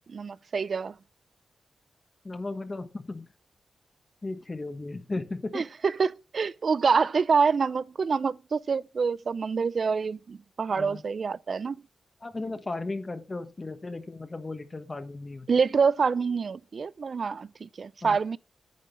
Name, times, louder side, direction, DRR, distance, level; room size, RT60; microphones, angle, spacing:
voice 1, 0.1-1.0 5.5-11.8 15.5-18.4, right 5 dB, 55° right, 0.4 m, -26 dB
voice 2, 2.2-3.3 4.2-5.6 10.7-11.0 12.2-15.5 18.0-18.2, left 2 dB, 30° left, 1.2 m, -35 dB
9.4 x 7.7 x 3.3 m
cardioid pair, 70°, 0 cm